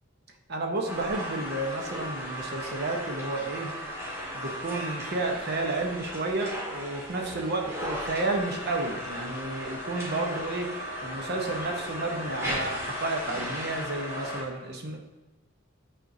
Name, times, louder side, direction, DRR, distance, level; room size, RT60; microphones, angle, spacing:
voice 1, 0.5-3.8 4.3-10.7 11.0-15.0, right 2 dB, 55° right, 3 dB, 0.9 m, -31 dB
sound 1, 0.9-14.4, equal, 15° right, 1.7 m, -36 dB
9.2 x 4.3 x 2.7 m, 1.1 s
head